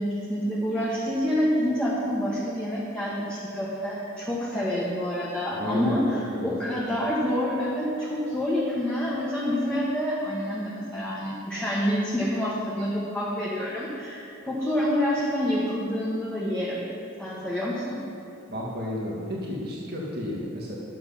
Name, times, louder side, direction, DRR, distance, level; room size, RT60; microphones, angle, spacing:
voice 1, 0.0-16.9 17.2-18.0, equal, 5° left, -7 dB, 1.4 m, -27 dB
voice 2, 5.5-6.0 6.3-6.5 18.5-20.7, left 1 dB, 50° right, -4 dB, 1.6 m, -32 dB
11.0 x 7.8 x 5.7 m, 2.9 s
head